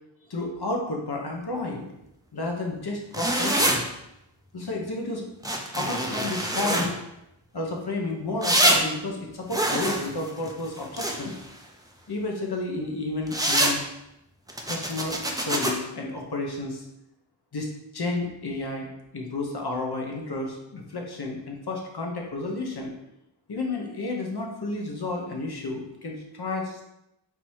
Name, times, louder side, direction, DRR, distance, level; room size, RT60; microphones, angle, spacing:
voice 1, 0.3-1.9 2.3-3.8 4.5-5.3 5.7-6.9 7.5-11.4 12.1-13.8 14.7-16.8 17.5-18.9 19.1-22.9 23.5-26.8, left 2 dB, 55° left, 0 dB, 1.1 m, -31 dB
sound 1, 3.1-3.8 5.4-6.9 8.4-8.8 9.5-11.4 13.3-13.7 14.5-15.7, right 1 dB, 10° right, 0.7 m, -25 dB
3.7 x 2.9 x 4.7 m, 0.86 s
cardioid pair, 45°, 46 cm